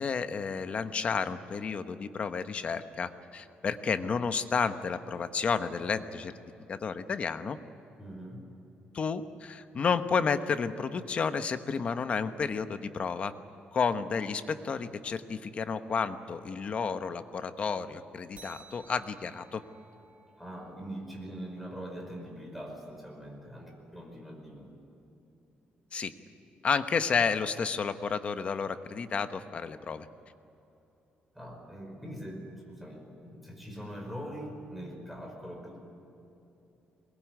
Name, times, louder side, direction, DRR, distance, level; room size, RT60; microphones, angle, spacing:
voice 1, 0.0-6.3 6.7-7.6 8.9-13.3 13.7-19.6 25.9-26.1 26.6-30.1, left 5 dB, 40° left, 9 dB, 1.1 m, -31 dB
voice 2, 8.0-8.4 20.3-24.7 31.3-35.8, equal, ahead, 1 dB, 5.3 m, -42 dB
sound 1, 18.4-23.3, right 4 dB, 40° right, 2.0 m, -58 dB
22.5 x 20.5 x 9.5 m, 2.9 s
cardioid pair, 145°, 3 cm